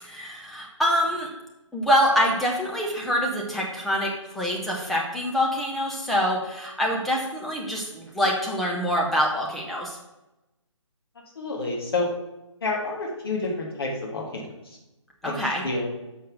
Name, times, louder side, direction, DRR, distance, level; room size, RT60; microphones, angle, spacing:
voice 1, 0.0-1.3 1.7-10.0 15.2-15.6, equal, ahead, -2 dB, 0.5 m, -25 dB
voice 2, 11.4-12.1 12.6-14.8 15.2-15.3 15.6-15.9, left 3 dB, 50° left, -1 dB, 1.9 m, -29 dB
6.3 x 5.6 x 6.1 m, 0.97 s
figure-of-eight pair, 145°, 16 cm